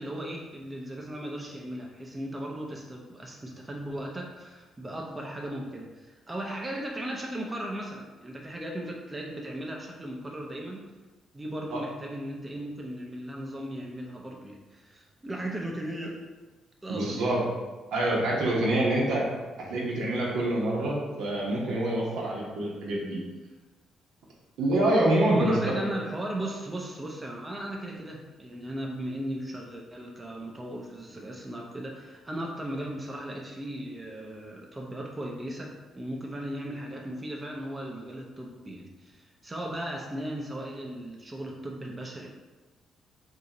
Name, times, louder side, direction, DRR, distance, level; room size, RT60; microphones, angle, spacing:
voice 1, 0.0-10.9 11.3-16.2 16.8-17.3 25.3-42.3, right 1 dB, 20° right, -1 dB, 0.5 m, -37 dB
voice 2, 16.9-17.4 17.9-19.3 19.7-23.2 24.6-25.8, right 1 dB, 85° right, -4 dB, 0.9 m, -26 dB
2.7 x 2.4 x 4.0 m, 1.2 s
cardioid pair, 90°, 0 cm